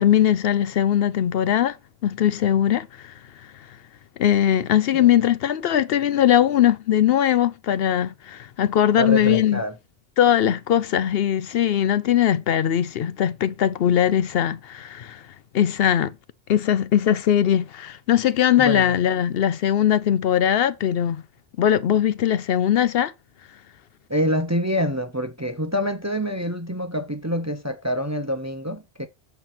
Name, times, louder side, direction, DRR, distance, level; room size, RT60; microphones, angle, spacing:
voice 1, 0.0-1.8 2.0-3.1 4.2-9.6 10.2-15.2 15.5-16.1 16.5-21.2 21.6-23.1, left 10 dB, 70° left, 0.8 m, -20 dB
voice 2, 9.0-9.7 18.6-19.0 24.1-29.1, equal, 20° right, 0.6 m, -26 dB
7.5 x 4.5 x 5.8 m
omnidirectional pair, 1.1 m